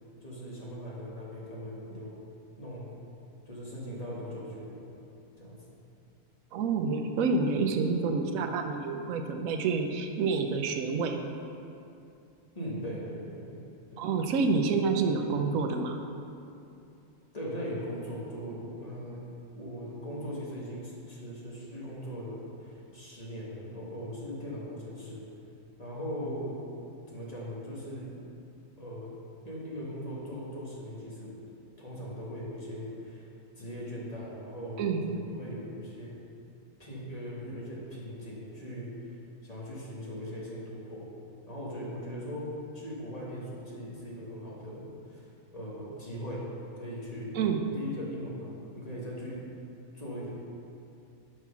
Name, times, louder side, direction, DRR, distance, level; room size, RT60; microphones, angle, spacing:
voice 1, 0.2-2.1 2.6-2.9 3.4-4.9 5.4-5.6 12.5-13.6 13.9-14.0 17.3-19.2 19.6-25.3 25.8-26.6 27.1-28.1 28.8-29.1 29.4-31.3 31.8-33.3 33.6-36.2 36.8-41.0 41.5-42.5 42.7-46.5 46.8-47.4 47.7-49.4 49.9-50.3, equal, 30° left, -6 dB, 1.5 m, -39 dB
voice 2, 6.5-11.2 14.0-16.0 34.8-35.2 47.3-47.7, right 4 dB, 80° right, 5 dB, 1.1 m, -28 dB
6.3 x 5.9 x 5.6 m, 2.6 s
omnidirectional pair, 1.4 m